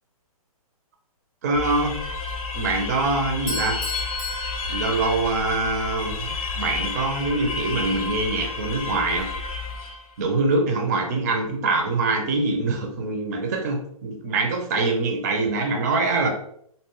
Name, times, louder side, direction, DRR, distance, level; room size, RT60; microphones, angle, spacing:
voice 1, 1.4-2.0 2.5-3.8 4.7-9.3 10.2-16.3, right 3 dB, 30° right, 2 dB, 0.4 m, -24 dB
sound 1, 1.5-10.1, left 4 dB, 70° left, 0.6 m, -31 dB
Bell / Doorbell, 3.5-5.6, left 3 dB, 25° left, 0.5 m, -32 dB
2.6 x 2.2 x 2.9 m, 0.67 s
hypercardioid pair, 160°, 19 cm